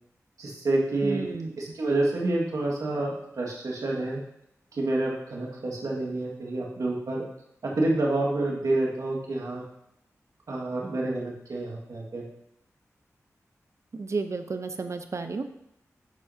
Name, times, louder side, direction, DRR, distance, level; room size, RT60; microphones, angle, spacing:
voice 1, 0.4-1.2 1.6-4.2 4.7-7.2 7.6-9.6 10.5-12.2, right 2 dB, 75° right, -2 dB, 1.8 m, -28 dB
voice 2, 1.0-1.6 13.9-15.4, right 4 dB, 55° right, 8 dB, 0.7 m, -32 dB
12.5 x 4.6 x 2.8 m, 0.79 s
cardioid pair, 40°, 6 cm